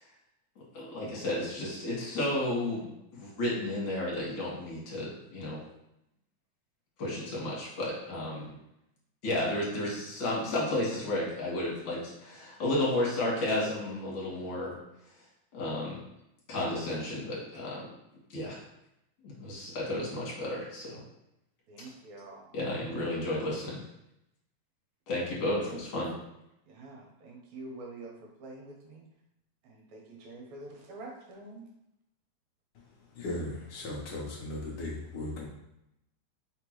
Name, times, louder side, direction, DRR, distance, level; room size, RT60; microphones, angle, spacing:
voice 1, 0.7-2.9 3.2-5.6 7.0-8.5 9.2-14.7 15.5-16.0 16.5-17.9 18.3-18.6 19.2-21.0 22.5-23.8 25.1-26.1, left 1 dB, 45° left, -5 dB, 2.0 m, -32 dB
voice 2, 21.7-22.4 26.7-28.1 28.4-29.0 29.7-31.7, right 2 dB, 75° right, 0 dB, 2.0 m, -46 dB
voice 3, 33.1-35.5, left 2 dB, 80° left, -3 dB, 1.2 m, -37 dB
4.4 x 3.6 x 3.0 m, 0.83 s
omnidirectional pair, 3.4 m